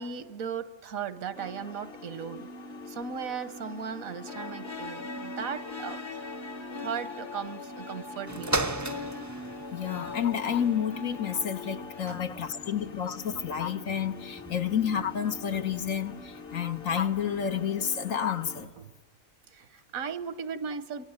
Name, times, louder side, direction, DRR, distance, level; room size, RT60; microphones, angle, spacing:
voice 1, 0.0-2.5 2.9-6.0 6.8-8.9 12.1-12.2 19.5-21.0, right 6 dB, 80° right, 1.5 m, -37 dB
sound 1, 1.3-18.7, left 2 dB, 50° left, 1.3 m, -44 dB
sound 2, 4.3-12.0, left 4 dB, 25° left, 0.8 m, -42 dB
sound 3, 8.3-17.8 18.5-18.6, right 2 dB, 15° right, 0.6 m, -39 dB
voice 2, 9.7-18.7, left 8 dB, 75° left, 1.6 m, -30 dB
27.5 x 24.0 x 8.7 m
omnidirectional pair, 1.4 m